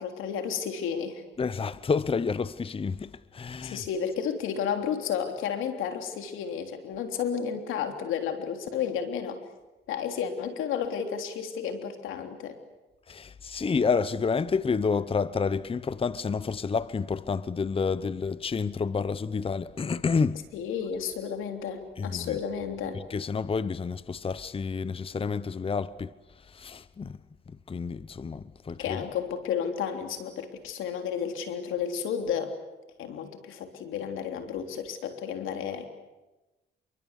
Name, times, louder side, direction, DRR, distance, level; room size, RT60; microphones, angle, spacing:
voice 1, 0.0-1.2 3.6-9.4 9.9-12.6 20.5-23.0 28.8-32.5 33.0-35.9, left 7 dB, 85° left, 3.4 m, -32 dB
voice 2, 1.4-3.8 13.1-20.5 22.0-22.4 22.9-27.2 27.5-29.0, left 5 dB, 30° left, 0.9 m, -29 dB
28.0 x 23.5 x 8.3 m
cardioid pair, 90°, 20 cm